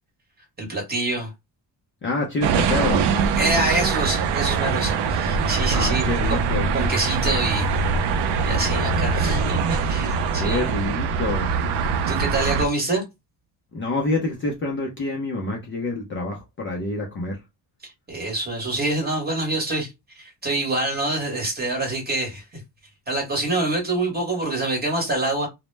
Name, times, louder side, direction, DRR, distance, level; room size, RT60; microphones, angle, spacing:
voice 1, 0.6-1.3 3.4-6.4 6.7-7.7 8.4-10.6 12.1-13.0 17.8-19.9 20.2-22.4 23.1-25.5, right 2 dB, 20° right, 1.0 m, -26 dB
voice 2, 2.0-3.1 5.7-6.7 10.4-11.5 13.7-17.4, left 2 dB, 30° left, 0.4 m, -27 dB
sound 1, 2.4-12.7, right 5 dB, 70° right, 0.5 m, -23 dB
2.0 x 2.0 x 3.1 m
cardioid pair, 165°, 43 cm